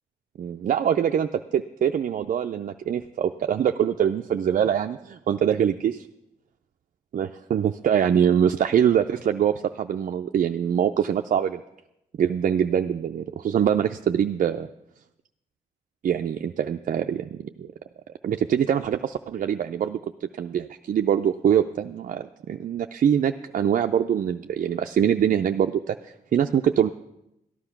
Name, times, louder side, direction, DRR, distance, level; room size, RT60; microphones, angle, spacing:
voice 1, 0.4-6.1 7.1-11.6 12.2-14.7 16.0-17.7 18.2-26.9, right 9 dB, 60° right, 6 dB, 0.4 m, -24 dB
13.5 x 9.9 x 5.8 m, 0.85 s
cardioid pair, 75°, 16 cm